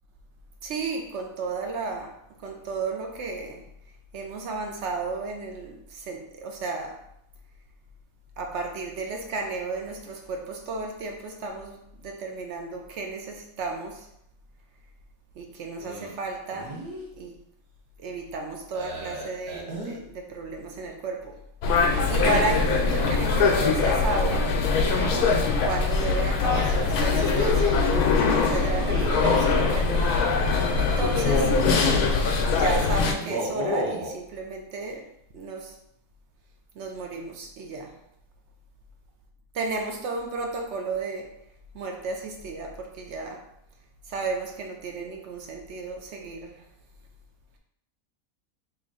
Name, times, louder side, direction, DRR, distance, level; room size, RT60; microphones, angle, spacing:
voice 1, 0.6-3.7 4.1-7.1 8.4-14.1 15.4-16.8 17.2-17.4 18.0-21.4 22.1-24.6 25.2-27.8 28.0-31.6 32.5-35.8 36.7-38.0 39.6-41.4 41.7-43.5 44.1-46.6, right 3 dB, 65° right, 2 dB, 0.7 m, -33 dB
sound 1, 15.8-16.1 16.5-17.0 18.7-20.0 22.1-23.4 24.9-25.3 26.5-28.0 28.7-29.6 31.0-32.1 33.1-34.1, left 1 dB, 85° right, 1.4 m, -32 dB
sound 2, 21.6-33.1, left 4 dB, 85° left, 1.1 m, -22 dB
3.3 x 2.6 x 3.7 m, 0.73 s
omnidirectional pair, 1.6 m